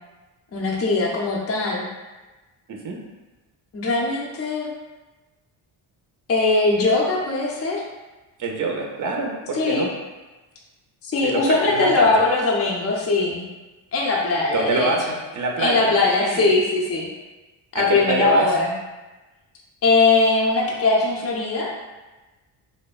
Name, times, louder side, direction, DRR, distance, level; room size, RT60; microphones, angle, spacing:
voice 1, 0.5-1.9 3.7-4.7 6.3-7.8 9.6-9.9 11.0-13.4 13.9-14.9 15.6-17.1 17.7-18.7 19.8-21.7, left 3 dB, 30° left, -3 dB, 0.6 m, -20 dB
voice 2, 8.4-9.9 11.2-12.1 14.5-16.5 17.7-18.5, right 3 dB, 40° right, 1 dB, 0.6 m, -25 dB
3.4 x 2.0 x 2.3 m, 1.2 s
supercardioid pair, 60°, 50 cm